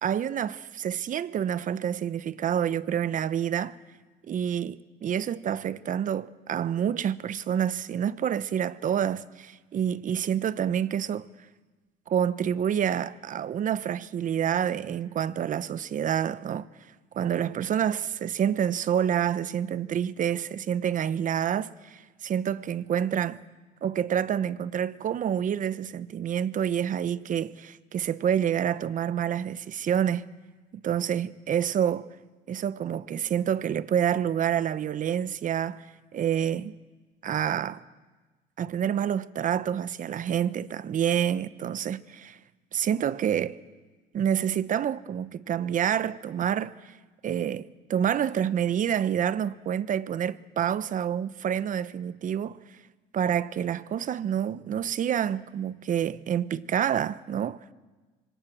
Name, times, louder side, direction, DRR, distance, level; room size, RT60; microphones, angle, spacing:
voice 1, 0.0-3.8 4.3-11.3 12.1-16.7 17.1-23.4 23.8-30.3 30.7-32.1 32.5-35.9 36.1-36.7 37.2-37.8 38.6-42.4 42.7-43.6 44.1-46.9 47.2-52.6 53.1-57.7, right 9 dB, 45° right, 0.8 m, -28 dB
26.5 x 23.5 x 6.2 m
cardioid pair, 105°, 19 cm